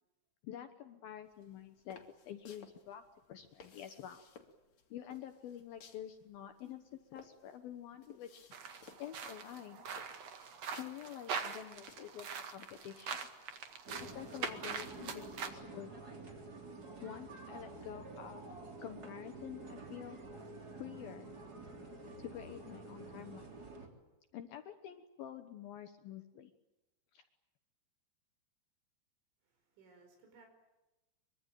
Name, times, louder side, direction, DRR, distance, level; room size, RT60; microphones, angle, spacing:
voice 1, 0.4-2.0 2.3-3.0 3.3-4.2 4.9-8.5 9.0-9.9 10.8-13.3 14.0-15.9 17.0-18.4 18.8-20.2 20.8-21.3 22.2-23.5 24.3-26.5 27.1-27.2, left 10 dB, 70° left, 9 dB, 2.4 m, -48 dB
sound 1, 1.2-15.2, left 5 dB, 45° left, 2.9 m, -62 dB
sound 2, 8.5-15.5, right 6 dB, 50° right, 2.1 m, -43 dB
sound 3, 13.9-23.9, right 2 dB, 25° right, 3.1 m, -49 dB
voice 2, 29.4-30.5, right 4 dB, 75° right, 4 dB, 7.1 m, -62 dB
24.0 x 23.5 x 9.1 m, 1.0 s
omnidirectional pair, 5.5 m